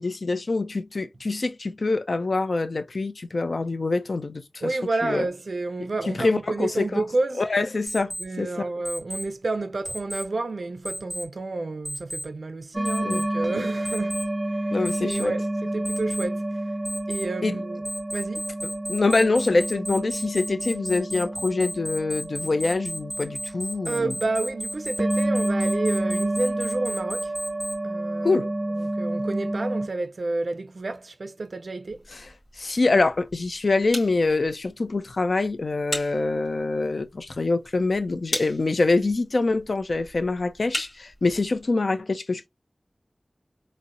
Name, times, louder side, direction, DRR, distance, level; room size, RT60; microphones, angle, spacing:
voice 1, 0.0-4.8 5.0-5.3 5.8-7.0 7.4-8.7 13.0-13.2 14.7-15.3 17.4-17.6 18.9-24.1 28.2-28.5 32.1-42.5, left 3 dB, 75° left, 0.5 m, -25 dB
voice 2, 4.6-7.4 8.2-14.2 14.6-16.6 17.1-17.8 18.1-18.4 23.9-27.3 27.8-28.5 28.8-32.0, right 3 dB, 80° right, 0.3 m, -30 dB
Alarm, 7.9-8.2 8.8-9.2 9.8-10.2 10.8-11.2 11.8-12.2 12.8-13.2 13.8-14.2 14.8-15.2 15.8-16.2 16.8-17.2 17.8-27.7, equal, 30° left, 1.7 m, -33 dB
sound 1, 12.7-29.9, right 1 dB, 20° right, 0.5 m, -29 dB
sound 2, 31.9-41.6, left 1 dB, 50° left, 2.0 m, -39 dB
4.0 x 2.0 x 2.4 m
wide cardioid pair, 60°, 0 cm